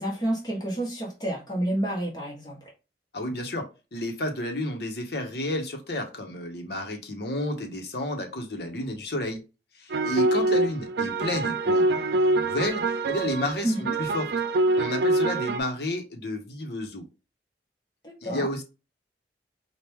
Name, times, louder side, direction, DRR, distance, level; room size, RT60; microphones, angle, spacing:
voice 1, 0.0-2.6 13.6-14.0 18.0-18.5, right 1 dB, 25° left, 1.2 m, -29 dB
voice 2, 3.1-3.7 3.9-9.4 9.8-14.3 14.7-17.0 18.2-18.6, left 1 dB, 70° left, 1.1 m, -31 dB
sound 1, 9.9-15.6, right 2 dB, 70° right, 0.4 m, -25 dB
4.6 x 2.5 x 3.5 m
head